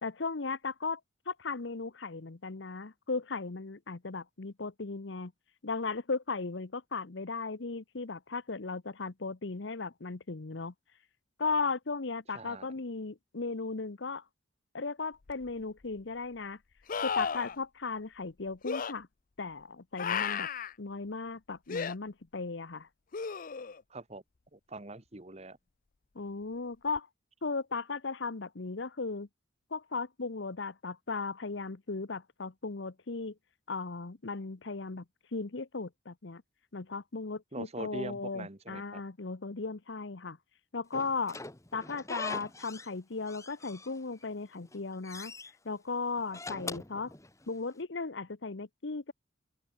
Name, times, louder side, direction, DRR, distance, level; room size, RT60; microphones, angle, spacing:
voice 1, 0.0-1.0 1.3-5.3 5.6-10.7 11.4-14.2 14.7-16.6 17.0-19.1 19.4-20.5 20.8-22.9 26.1-27.1 27.4-29.3 29.7-33.3 33.7-35.0 35.3-36.4 36.7-40.4 40.7-41.4 41.7-45.3 45.6-47.1 47.5-49.1, left 4 dB, 60° left, 0.9 m, -36 dB
voice 2, 12.3-12.7 23.9-24.2 24.5-25.6 37.5-39.0, right 2 dB, 35° right, 1.5 m, -43 dB
sound 1, 15.3-15.4 16.9-17.6 18.6-18.9 20.0-20.7 21.7-21.9 23.1-23.8 27.0-27.1, left 6 dB, 45° left, 0.5 m, -33 dB
Slam / Squeak, 40.9-43.0 43.3-44.2 44.6-45.5 46.2-47.7, left 3 dB, 15° left, 1.5 m, -43 dB
open air
head